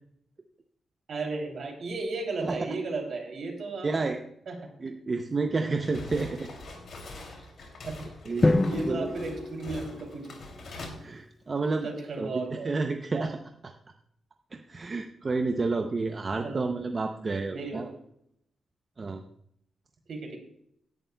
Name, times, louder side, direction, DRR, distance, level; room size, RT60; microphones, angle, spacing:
voice 1, 1.1-3.9 4.5-4.7 7.8-8.1 8.3-10.5 11.8-12.7 13.1-13.3 16.4-16.6 17.5-17.9 20.1-20.4, right 3 dB, 50° right, 1 dB, 2.8 m, -35 dB
voice 2, 3.8-4.2 4.8-6.5 8.3-8.5 8.9-9.1 11.0-11.9 12.2-13.4 13.6-13.7 14.5-17.9 19.0-19.2, right 3 dB, 25° right, 4 dB, 0.6 m, -30 dB
sound 1, 5.8-10.9, left 2 dB, 55° left, 2.6 m, -43 dB
Drum, 8.4-10.6, left 2 dB, 20° left, 0.4 m, -27 dB
17.0 x 11.0 x 2.2 m, 0.72 s
wide cardioid pair, 180°, 0 cm